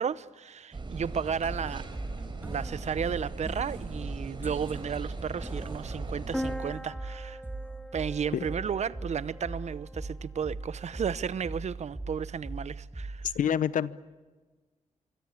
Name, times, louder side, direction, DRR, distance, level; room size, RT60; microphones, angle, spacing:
voice 1, 0.0-1.8 2.4-7.4 7.9-13.3, right 7 dB, 60° right, 0.9 m, -33 dB
sound 1, 0.7-6.5, right 3 dB, 40° right, 4.5 m, -40 dB
sound 2, 1.4-13.4, right 2 dB, 15° right, 2.8 m, -40 dB
sound 3, 6.3-10.1, equal, ahead, 1.3 m, -40 dB
voice 2, 13.3-13.9, left 9 dB, 85° left, 0.8 m, -27 dB
25.0 x 25.0 x 8.5 m
cardioid pair, 85°, 13 cm